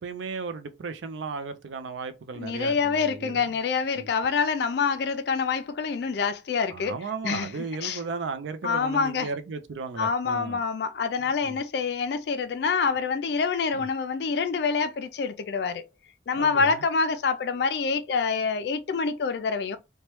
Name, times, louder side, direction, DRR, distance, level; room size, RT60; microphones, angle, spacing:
voice 1, 0.0-3.5 4.0-4.1 6.7-10.6 11.5-11.6 13.7-13.9 16.3-16.7, right 4 dB, 80° right, 0.4 m, -35 dB
voice 2, 2.3-7.0 7.2-8.0 8.6-9.3 10.0-15.8 16.3-19.8, left 5 dB, 60° left, 0.3 m, -26 dB
3.0 x 2.2 x 3.0 m
head